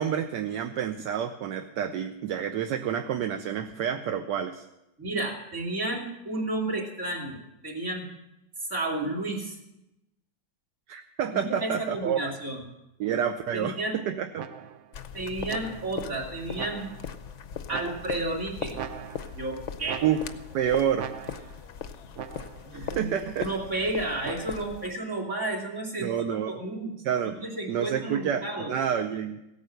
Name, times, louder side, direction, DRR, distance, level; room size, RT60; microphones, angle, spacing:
voice 1, 0.0-4.6 10.9-12.3 13.0-14.5 20.0-20.2 20.5-21.1 22.7-23.5 26.0-26.6 27.0-27.4 27.7-29.4, right 9 dB, 70° right, 6 dB, 1.3 m, -29 dB
voice 2, 5.0-8.1 8.6-9.6 11.3-12.6 13.5-14.0 15.1-16.9 17.7-18.8 19.3-20.0 22.7-26.9 27.3-28.7, right 2 dB, 40° right, -1 dB, 3.0 m, -32 dB
sound 1, 14.4-14.9 15.5-16.1 16.6-17.2 17.7-18.4 18.7-19.5 19.8-20.6 21.0-21.7 22.2-22.7 24.2-24.8, right 8 dB, 85° right, 0.6 m, -40 dB
sound 2, 14.9-24.9, left 8 dB, 60° left, 0.7 m, -40 dB
16.5 x 9.2 x 6.5 m, 0.91 s
omnidirectional pair, 2.0 m